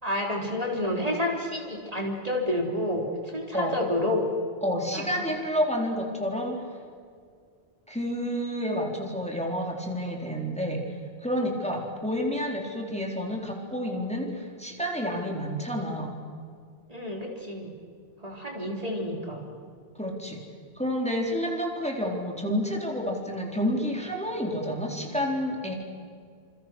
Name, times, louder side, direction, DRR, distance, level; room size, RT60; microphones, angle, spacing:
voice 1, 0.0-4.3 4.9-5.3 16.9-17.7 18.2-19.4, left 1 dB, 35° right, 0 dB, 3.9 m, -29 dB
voice 2, 4.6-6.6 7.9-10.8 11.2-16.1 20.0-20.4 20.8-25.8, equal, 5° left, 0 dB, 4.1 m, -29 dB
28.5 x 28.5 x 6.3 m, 2.1 s
omnidirectional pair, 1.1 m